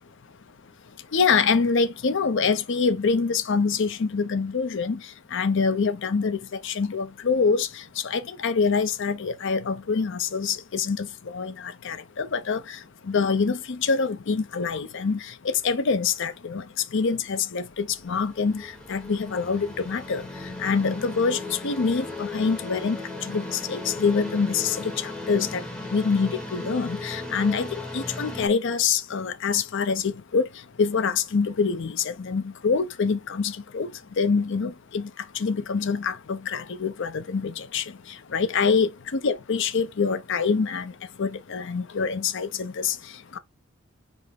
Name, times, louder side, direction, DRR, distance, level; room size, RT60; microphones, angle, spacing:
voice 1, 0.8-43.4, left 5 dB, 65° left, 0.6 m, -26 dB
sound 1, 17.7-28.5, left 2 dB, 5° left, 1.0 m, -37 dB
5.4 x 2.1 x 4.2 m
head